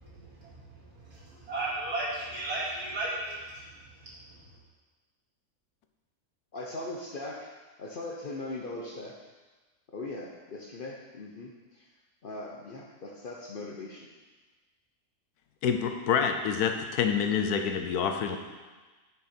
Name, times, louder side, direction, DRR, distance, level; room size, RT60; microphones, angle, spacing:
voice 1, 0.3-4.4, right 2 dB, 85° right, -9 dB, 3.1 m, -36 dB
voice 2, 6.5-7.5 7.8-9.2 9.9-11.9 12.2-14.1, left 2 dB, 50° left, -1 dB, 0.7 m, -40 dB
voice 3, 15.6-18.4, left 7 dB, 85° left, 6 dB, 1.2 m, -27 dB
7.6 x 5.7 x 4.4 m, 1.3 s
omnidirectional pair, 1.6 m